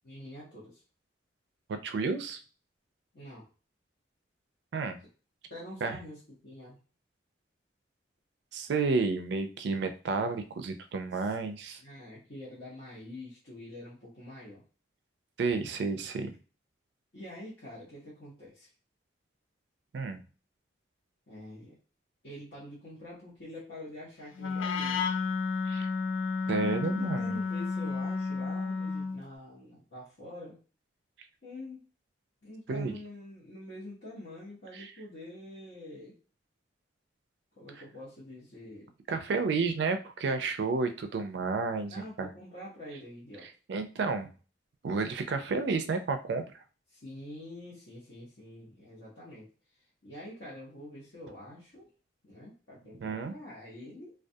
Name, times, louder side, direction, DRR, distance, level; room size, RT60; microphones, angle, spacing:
voice 1, 0.0-0.8 3.1-3.5 5.5-6.8 11.1-11.3 11.8-14.6 17.1-18.7 21.3-21.8 22.2-25.1 26.6-30.6 31.4-31.8 32.4-36.2 37.6-38.9 41.8-43.5 46.9-49.5 50.0-51.9 52.2-54.1, left 1 dB, 60° left, -9 dB, 0.8 m, -46 dB
voice 2, 1.7-2.4 4.7-5.0 5.8-6.0 8.5-11.8 15.4-16.3 19.9-20.2 25.7-25.9 26.5-27.4 32.7-33.0 34.7-34.9 39.1-42.3 43.7-44.3 44.8-46.4 53.0-53.3, right 4 dB, 65° right, 8 dB, 0.3 m, -31 dB
Wind instrument woodwind instrument, 24.4-29.2, left 4 dB, 90° left, 0.3 m, -31 dB
2.3 x 2.2 x 2.6 m, 0.36 s
head